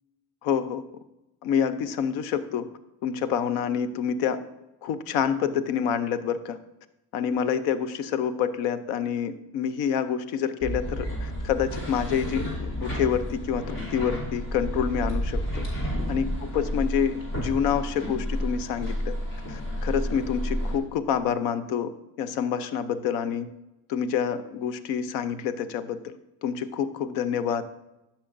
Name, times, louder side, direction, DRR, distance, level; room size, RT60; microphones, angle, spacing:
voice 1, 0.4-0.8 1.4-2.7 3.0-4.4 4.8-6.6 7.1-15.6 16.1-19.2 19.5-21.9 22.2-23.5 23.9-27.6, left 8 dB, 90° left, 13 dB, 0.6 m, -27 dB
sound 1, 10.6-20.8, equal, 60° left, 2.8 m, -31 dB
12.5 x 5.7 x 2.5 m, 0.94 s
supercardioid pair, 65°, 37 cm